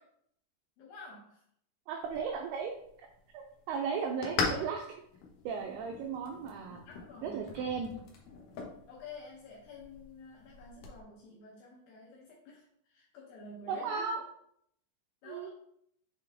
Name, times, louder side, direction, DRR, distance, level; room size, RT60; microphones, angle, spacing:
voice 1, 0.8-1.4 6.8-7.6 8.9-14.2 15.2-15.5, left 3 dB, 75° left, -3 dB, 2.2 m, -50 dB
voice 2, 1.9-2.7 3.3-4.8 5.5-6.8 7.2-7.9 13.7-14.2 15.2-15.5, right 6 dB, 85° right, 2 dB, 2.2 m, -35 dB
sound 1, 2.0-11.0, left 4 dB, 90° left, 1.8 m, -41 dB
7.3 x 3.8 x 3.5 m, 0.69 s
omnidirectional pair, 5.3 m